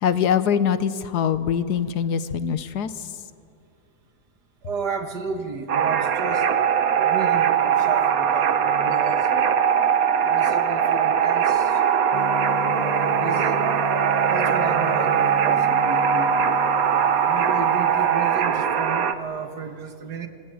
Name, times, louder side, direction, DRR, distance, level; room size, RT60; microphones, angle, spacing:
voice 1, 0.0-3.1, left 8 dB, 75° left, 13 dB, 1.5 m, -23 dB
voice 2, 4.6-6.5 6.9-9.6 10.2-11.8 12.6-13.6 14.3-16.5 17.2-20.3, right 5 dB, 85° right, 7 dB, 2.2 m, -33 dB
sound 1, 5.7-19.1, right 7 dB, 60° right, 1.4 m, -21 dB
Gong, 12.1-18.0, left 4 dB, 45° left, 0.4 m, -36 dB
28.0 x 19.0 x 8.9 m, 2.5 s
omnidirectional pair, 1.7 m